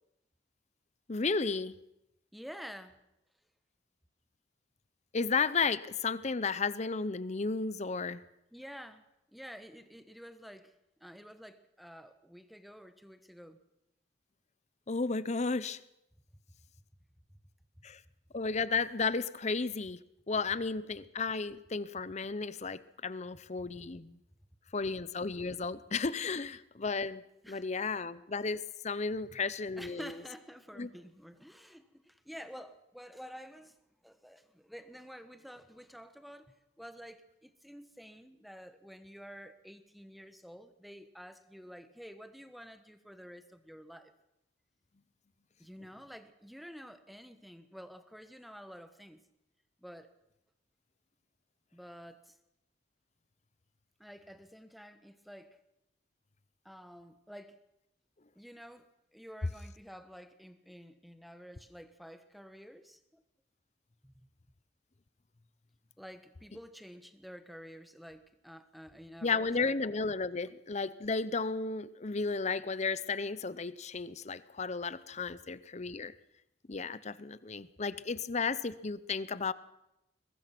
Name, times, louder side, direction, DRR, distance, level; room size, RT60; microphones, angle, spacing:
voice 1, 1.1-1.7 5.1-8.2 14.9-15.8 17.8-18.0 18.3-20.0 20.3-24.2 24.7-30.1 30.8-30.9 69.2-76.1 76.7-79.5, left 4 dB, 40° left, 16 dB, 0.7 m, -33 dB
voice 2, 2.3-3.0 8.5-9.0 9.3-10.7 11.0-13.6 27.4-27.8 29.3-29.4 29.8-33.8 34.0-44.1 45.6-49.2 49.8-50.1 51.7-52.4 54.0-55.6 56.6-57.6 58.3-63.2 64.0-64.1 66.0-69.8, equal, ahead, 9 dB, 1.2 m, -50 dB
22.5 x 20.0 x 6.0 m, 0.85 s
head